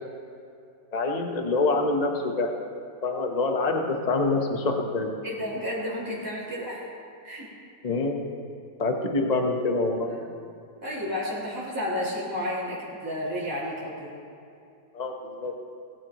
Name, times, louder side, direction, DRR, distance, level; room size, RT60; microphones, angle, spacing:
voice 1, 0.9-2.5 3.0-5.1 7.8-8.2 8.8-10.1 14.9-15.5, left 3 dB, 25° left, 2 dB, 1.1 m, -26 dB
voice 2, 5.2-6.9 7.2-7.5 10.8-14.1, left 1 dB, 10° right, -10 dB, 4.0 m, -31 dB
20.0 x 16.0 x 3.1 m, 2.6 s
omnidirectional pair, 2.0 m